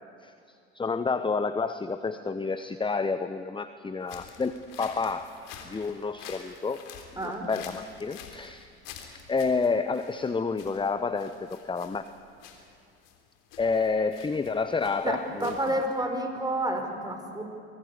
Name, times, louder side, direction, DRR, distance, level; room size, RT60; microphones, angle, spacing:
voice 1, 0.7-5.3 5.6-6.8 7.2-8.7 9.3-12.1 13.6-15.6, left 4 dB, 15° left, 11 dB, 1.0 m, -29 dB
sound 1, 4.0-16.1, left 7 dB, 65° left, 3.5 m, -48 dB
voice 2, 7.2-7.5 15.0-15.1 15.4-17.4, right 1 dB, 10° right, 4 dB, 4.7 m, -29 dB
24.0 x 19.0 x 8.4 m, 2.7 s
hypercardioid pair, 70°, 35 cm